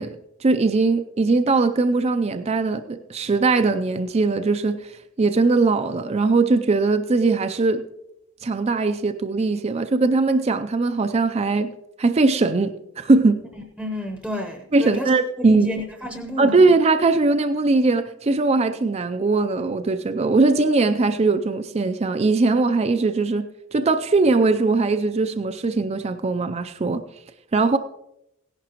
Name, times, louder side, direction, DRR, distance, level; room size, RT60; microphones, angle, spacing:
voice 1, 0.0-4.9 5.2-7.8 8.4-11.7 12.0-13.4 14.7-15.7 16.4-23.5 23.7-27.0 27.5-27.8, right 3 dB, 30° right, 8 dB, 0.4 m, -20 dB
voice 2, 13.6-15.2 15.4-16.7, left 1 dB, ahead, 3 dB, 0.8 m, -31 dB
16.5 x 11.0 x 3.0 m, 0.84 s
head